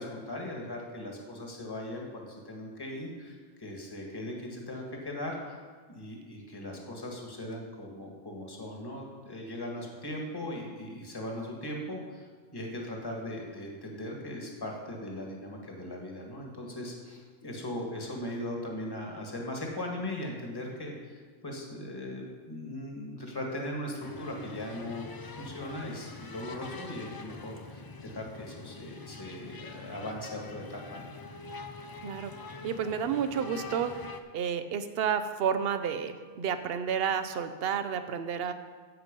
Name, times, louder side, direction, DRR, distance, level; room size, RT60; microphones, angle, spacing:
voice 1, 0.0-5.5 5.9-12.2 12.5-31.1, left 1 dB, 20° left, 0 dB, 1.6 m, -39 dB
sound 1, 24.0-34.2, left 3 dB, 40° left, 0.3 m, -44 dB
voice 2, 32.6-33.9 34.3-38.5, right 7 dB, 60° right, 10 dB, 0.8 m, -30 dB
10.5 x 8.0 x 5.2 m, 1.5 s
omnidirectional pair, 1.2 m